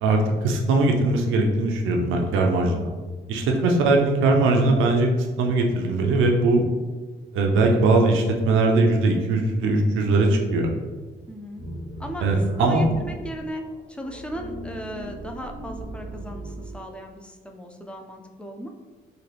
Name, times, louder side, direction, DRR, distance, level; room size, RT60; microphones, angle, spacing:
voice 1, 0.0-2.9 3.3-5.1 5.4-6.6 7.3-10.7 12.2-12.8, right 2 dB, 90° right, 1 dB, 0.6 m, -20 dB
voice 2, 2.6-3.0 3.5-3.7 11.3-11.6 12.0-12.3 12.6-18.7, equal, 5° left, 3 dB, 0.4 m, -37 dB
sound 1, 11.6-16.8, right 1 dB, 85° left, 1.0 m, -38 dB
3.8 x 2.2 x 3.3 m, 1.3 s
cardioid pair, 90°, 20 cm